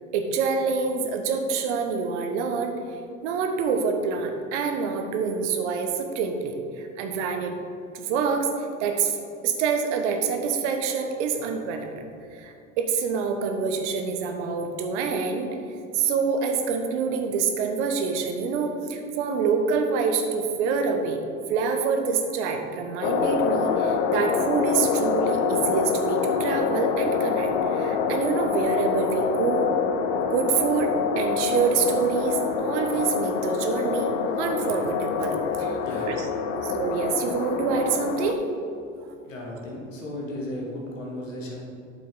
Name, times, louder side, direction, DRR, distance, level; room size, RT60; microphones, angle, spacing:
voice 1, 0.1-2.8 3.2-7.6 7.9-8.5 8.8-11.9 12.3-15.5 15.9-21.2 21.5-29.7 30.3-34.1 34.4-36.3 36.6-38.4, right 5 dB, 65° right, 4 dB, 1.1 m, -26 dB
sound 1, 23.0-38.3, left 6 dB, 60° left, 0.8 m, -26 dB
voice 2, 39.2-41.6, left 1 dB, 90° left, -2 dB, 1.9 m, -35 dB
8.6 x 6.8 x 3.9 m, 2.5 s
hypercardioid pair, 80°, 37 cm